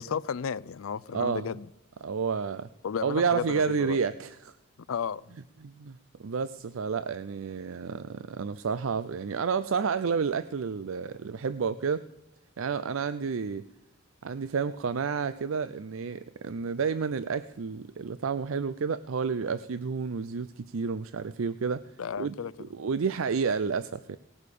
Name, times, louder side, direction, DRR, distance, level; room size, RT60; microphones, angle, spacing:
voice 1, 0.0-1.7 2.8-4.0 4.9-5.2 22.0-22.5, left 6 dB, 90° left, 0.5 m, -33 dB
voice 2, 1.1-1.5 2.0-2.7 3.0-4.5 5.6-12.1 12.6-13.6 14.2-21.9 22.2-22.3 22.7-24.2, right 5 dB, 85° right, 0.5 m, -30 dB
18.5 x 8.5 x 6.8 m
head